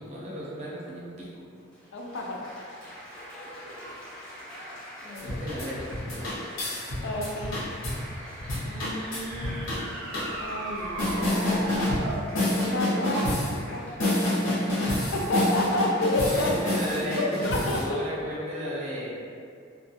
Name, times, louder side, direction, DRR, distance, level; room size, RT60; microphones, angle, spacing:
voice 1, 0.0-1.4 5.2-6.4 14.5-14.8 15.2-15.3 16.2-19.3, equal, 35° right, -7 dB, 0.6 m, -35 dB
Applause, 1.5-17.7, equal, 5° left, 0.5 m, -45 dB
voice 2, 1.9-2.4 5.0-5.3 7.0-7.6 8.7-9.8 10.4-11.7 12.6-13.8 15.1-16.5 17.2-18.1, left 1 dB, 65° left, -1 dB, 0.4 m, -30 dB
sound 1, 5.1-8.0 8.4-9.8 10.1-10.3 11.0-12.1 12.3-13.5 14.0-17.8, left 1 dB, 85° left, 0.8 m, -28 dB
sound 2, 8.0-12.3, right 2 dB, 85° right, 0.4 m, -37 dB
2.3 x 2.3 x 2.7 m, 2.3 s
head